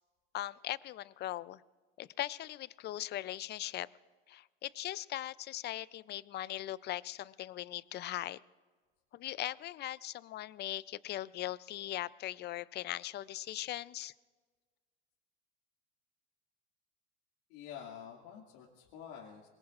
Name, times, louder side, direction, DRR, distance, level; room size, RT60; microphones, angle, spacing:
voice 1, 0.3-1.6 2.0-3.9 4.3-8.4 9.1-14.1, left 14 dB, 35° left, 19 dB, 0.5 m, -40 dB
voice 2, 17.5-19.5, left 8 dB, 70° left, -2 dB, 2.5 m, -48 dB
26.0 x 22.0 x 2.6 m, 1.4 s
supercardioid pair, 105°, 29 cm